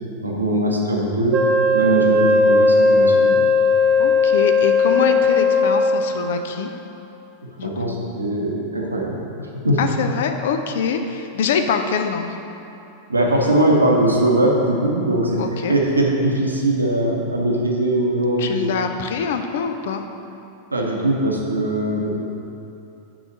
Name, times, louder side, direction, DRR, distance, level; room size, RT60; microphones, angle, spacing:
voice 1, 0.2-1.4 1.7-3.4 7.4-9.8 13.1-15.4 15.7-18.8 20.7-22.2, right 1 dB, 80° right, -1 dB, 1.0 m, -21 dB
Wind instrument woodwind instrument, 1.3-6.1, left 3 dB, 20° right, 1.2 m, -16 dB
voice 2, 4.0-6.7 7.6-8.0 9.8-12.4 15.4-15.8 18.4-20.0, left 6 dB, 55° left, 6 dB, 0.5 m, -24 dB
6.1 x 4.9 x 6.4 m, 2.9 s
figure-of-eight pair, 90°, 0 cm